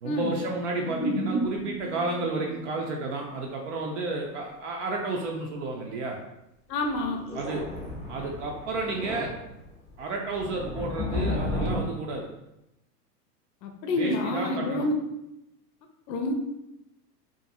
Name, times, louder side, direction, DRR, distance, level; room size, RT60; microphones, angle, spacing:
voice 1, 0.0-6.2 7.3-7.6 8.1-9.3 10.0-12.3 13.9-14.9, right 3 dB, 50° right, 0 dB, 0.5 m, -31 dB
sound 1, 0.7-3.1 3.4-3.5 6.8-11.8, left 1 dB, 15° left, 0.5 m, -32 dB
voice 2, 6.7-7.2 13.6-15.0 16.1-16.3, left 2 dB, 85° left, 4 dB, 0.6 m, -28 dB
2.5 x 2.5 x 2.7 m, 0.90 s
hypercardioid pair, 115°, 49 cm